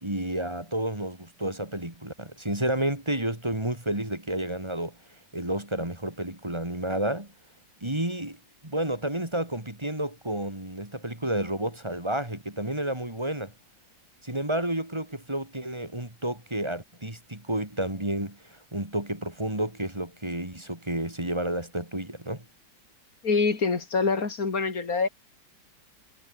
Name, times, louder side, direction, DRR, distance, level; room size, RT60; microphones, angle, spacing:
voice 1, 0.0-5.0 5.3-7.3 7.8-8.4 8.6-13.5 14.2-22.4, right 1 dB, 15° right, 3.7 m, -31 dB
voice 2, 23.2-25.1, left 4 dB, 50° left, 3.1 m, -25 dB
omnidirectional pair, 1.9 m